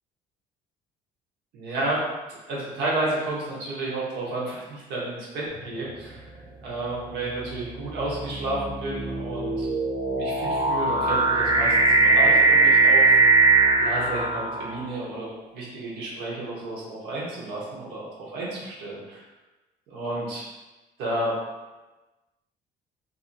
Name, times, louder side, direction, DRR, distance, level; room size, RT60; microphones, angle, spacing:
voice 1, 1.5-2.0 2.3-6.2 6.6-9.7 10.1-13.2 13.8-19.2 19.9-20.4 21.0-21.4, right 2 dB, 85° right, -5 dB, 0.8 m, -31 dB
sound 1, 5.6-6.0 6.8-15.0, right 3 dB, 30° right, 0.4 m, -21 dB
2.6 x 2.6 x 2.5 m, 1.1 s
cardioid pair, 110°, 17 cm